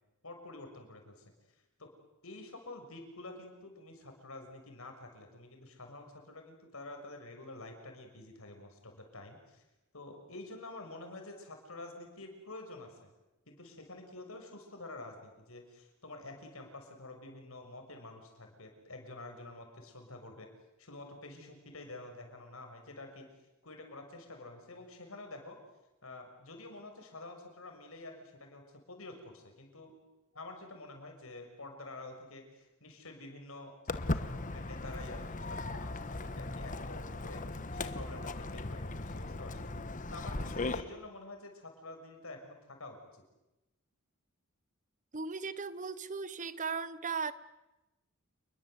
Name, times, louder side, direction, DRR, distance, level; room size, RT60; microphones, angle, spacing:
voice 1, 0.2-1.2 1.8-1.9 2.2-9.6 9.9-13.1 13.5-20.5 20.8-23.3 23.6-25.6 26.0-29.9 30.3-39.6 40.1-43.0, left 2 dB, 75° left, 4 dB, 6.5 m, -48 dB
Walk footsteps, 33.9-40.8, left 2 dB, 40° left, 1.2 m, -38 dB
voice 2, 45.1-47.3, right 5 dB, 35° right, 16 dB, 0.9 m, -37 dB
29.0 x 22.0 x 8.1 m, 0.99 s
head